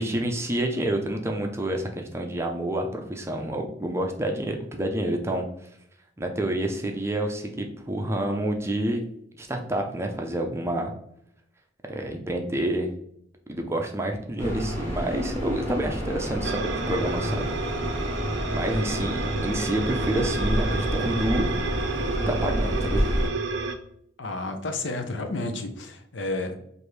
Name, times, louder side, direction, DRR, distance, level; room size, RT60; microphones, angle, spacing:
voice 1, 0.0-5.4 6.2-9.0 9.4-10.9 11.9-12.9 13.5-17.5 18.5-21.5 22.3-23.0, right 1 dB, 15° right, 2 dB, 0.5 m, -28 dB
sound 1, 14.4-23.3, equal, 10° left, 1.3 m, -29 dB
sound 2, 16.4-23.7, right 4 dB, 65° right, 0.5 m, -31 dB
voice 2, 24.2-26.5, left 2 dB, 75° left, 6 dB, 0.6 m, -31 dB
4.6 x 2.6 x 3.2 m, 0.72 s
head